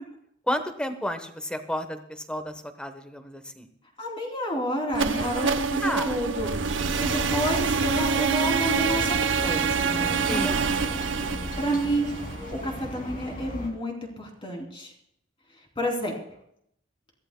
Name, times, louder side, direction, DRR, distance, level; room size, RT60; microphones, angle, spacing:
voice 1, 0.5-3.7 5.8-6.2 10.3-11.0, equal, 5° left, 8 dB, 1.0 m, -32 dB
voice 2, 4.0-6.5 7.0-10.5 11.6-12.2 12.6-14.9 15.8-16.1, equal, 30° left, 0 dB, 3.1 m, -30 dB
sound 1, 4.9-12.8, right 5 dB, 70° right, 0.8 m, -26 dB
sound 2, 8.6-13.7, left 1 dB, 45° left, 2.5 m, -36 dB
23.0 x 15.0 x 2.2 m, 0.73 s
head